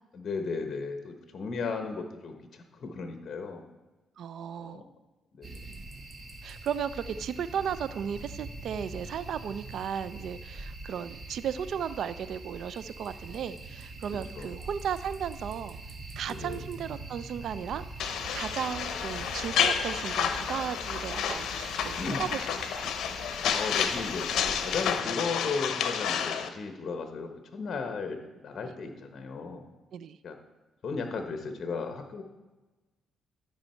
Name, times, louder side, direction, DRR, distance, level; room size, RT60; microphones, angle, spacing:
voice 1, 0.1-3.6 4.6-4.8 5.3-5.5 14.3-14.5 16.3-16.6 22.0-22.3 23.5-29.6 30.2-30.4 30.8-32.2, left 4 dB, 50° left, 5 dB, 1.1 m, -35 dB
voice 2, 4.2-4.8 6.4-15.8 16.2-17.8 18.3-22.5 22.7-22.9 28.6-28.7 29.9-30.2, right 8 dB, 70° right, 15 dB, 0.4 m, -35 dB
sound 1, 5.4-25.0, right 2 dB, 40° right, 1.3 m, -44 dB
sound 2, 18.0-26.5, left 7 dB, 75° left, 0.7 m, -30 dB
12.5 x 5.5 x 4.4 m, 1.1 s
cardioid pair, 90°, 0 cm